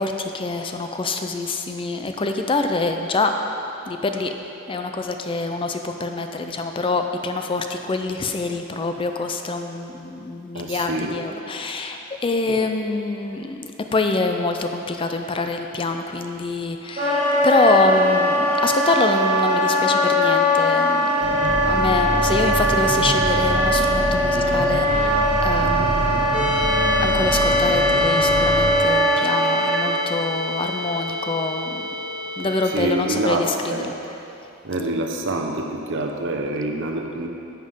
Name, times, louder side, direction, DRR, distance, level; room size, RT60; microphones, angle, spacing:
voice 1, 0.0-3.4 3.8-4.3 4.7-21.2 21.7-26.2 27.0-31.9 32.4-34.0, left 3 dB, 25° left, 5 dB, 0.4 m, -25 dB
voice 2, 10.5-11.2 12.5-12.6 25.6-25.9 32.7-33.9 34.6-37.3, right 2 dB, 60° right, 3 dB, 0.8 m, -26 dB
Wind instrument woodwind instrument, 17.0-29.8, equal, 35° right, 1.8 m, -20 dB
sound 1, 21.2-28.7, equal, 80° left, 1.5 m, -27 dB
sound 2, 26.3-32.8, left 2 dB, 5° right, 1.7 m, -28 dB
10.0 x 7.5 x 3.7 m, 2.9 s
head